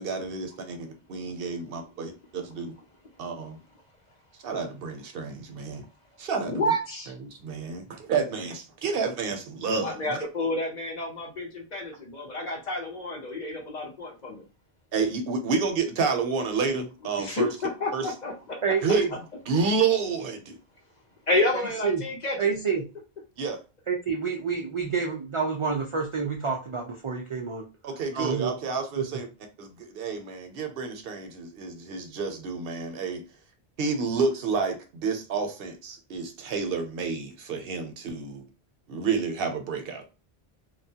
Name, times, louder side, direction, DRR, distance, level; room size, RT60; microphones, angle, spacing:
voice 1, 0.0-2.7 3.2-3.6 4.4-5.8 6.2-6.6 7.2-10.2 14.9-17.5 17.9-18.1 18.8-19.1 19.5-20.6 23.4-23.6 27.8-29.3 29.6-33.2 33.8-38.4 38.9-40.0, right 5 dB, 70° right, 0.8 m, -29 dB
voice 2, 6.5-7.1 9.8-14.4 17.2-18.6 21.3-22.5, left 1 dB, 50° left, 0.7 m, -29 dB
voice 3, 18.6-19.1 21.8-22.0 22.4-22.8 23.9-27.7 28.1-28.5 29.0-29.1, right 5 dB, 55° right, 0.3 m, -28 dB
2.9 x 2.2 x 2.7 m
omnidirectional pair, 1.1 m